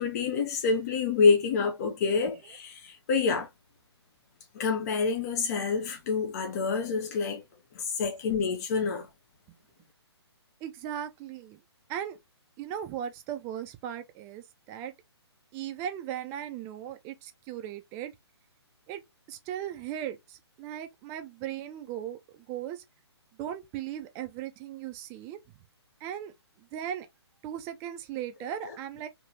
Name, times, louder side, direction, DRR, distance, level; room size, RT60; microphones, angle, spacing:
voice 1, 0.0-3.5 4.5-7.4 7.7-9.1, left 5 dB, 35° left, 0.6 m, -27 dB
voice 2, 10.6-11.6 11.9-12.2 12.6-14.9 15.5-18.1 18.9-19.0 19.3-22.8 23.4-25.4 26.0-26.3 26.7-27.1 27.4-29.1, right 10 dB, 20° right, 0.5 m, -37 dB
3.3 x 2.9 x 2.7 m
figure-of-eight pair, 135°, 14 cm